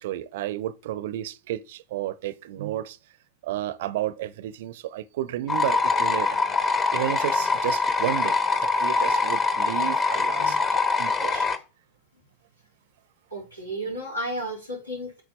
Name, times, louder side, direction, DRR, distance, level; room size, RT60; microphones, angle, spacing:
voice 1, 0.0-3.0 3.4-6.4 6.9-10.6 11.0-11.5, right 13 dB, 55° right, 0.5 m, -32 dB
sound 1, 5.5-11.6, left 3 dB, 25° left, 0.9 m, -24 dB
voice 2, 13.3-15.2, right 1 dB, 85° left, 3.1 m, -33 dB
8.4 x 6.1 x 4.1 m
figure-of-eight pair, 90°, 0 cm